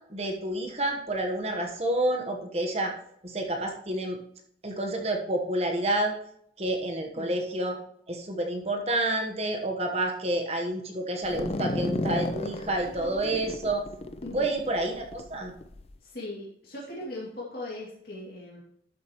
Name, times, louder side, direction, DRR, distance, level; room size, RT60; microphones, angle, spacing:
voice 1, 0.0-2.9 3.2-4.2 4.6-6.1 6.6-7.8 8.1-13.8 14.3-15.5, right 1 dB, 35° right, 2 dB, 1.1 m, -29 dB
sound 1, 11.2-15.9, left 2 dB, 35° left, 0.5 m, -34 dB
voice 2, 16.0-18.6, left 1 dB, 55° left, -6 dB, 2.5 m, -39 dB
12.0 x 7.4 x 3.0 m, 0.70 s
head